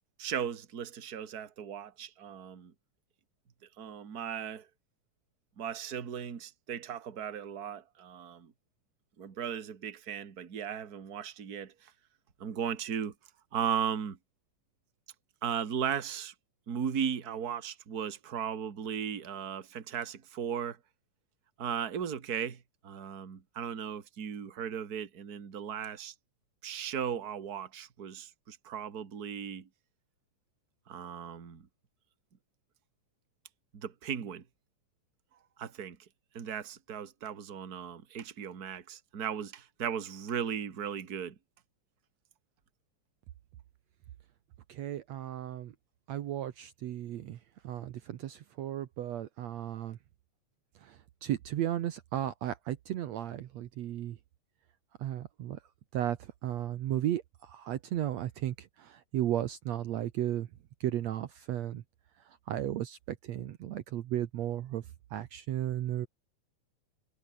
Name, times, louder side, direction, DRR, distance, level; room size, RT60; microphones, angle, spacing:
voice 1, 0.2-2.7 3.8-4.7 5.6-8.5 9.2-11.9 12.4-13.1 13.5-14.2 15.4-16.3 16.7-20.8 21.6-26.1 26.6-29.7 30.9-31.7 33.7-34.4 35.6-36.0 36.3-41.4, right 8 dB, 35° right, 2.1 m, -36 dB
voice 2, 44.7-45.8 46.1-47.4 47.6-50.0 50.8-54.2 55.0-55.6 55.9-60.5 60.8-61.8 62.2-66.1, right 12 dB, 65° right, 2.2 m, -35 dB
omnidirectional pair, 3.5 m